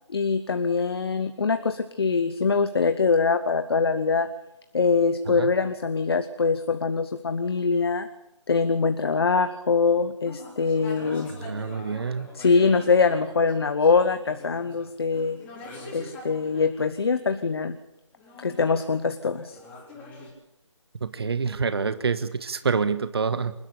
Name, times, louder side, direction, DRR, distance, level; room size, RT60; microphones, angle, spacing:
voice 1, 0.1-4.3 4.7-8.1 8.5-11.3 12.3-15.4 15.9-17.8 18.4-19.6, left 4 dB, 50° left, 9 dB, 1.2 m, -23 dB
sound 1, 10.2-16.7 18.2-20.3, left 2 dB, 10° left, 3.9 m, -44 dB
voice 2, 11.3-12.3 21.0-23.5, right 5 dB, 50° right, 11 dB, 1.4 m, -27 dB
28.0 x 12.0 x 8.4 m, 0.87 s
figure-of-eight pair, 155°, 16 cm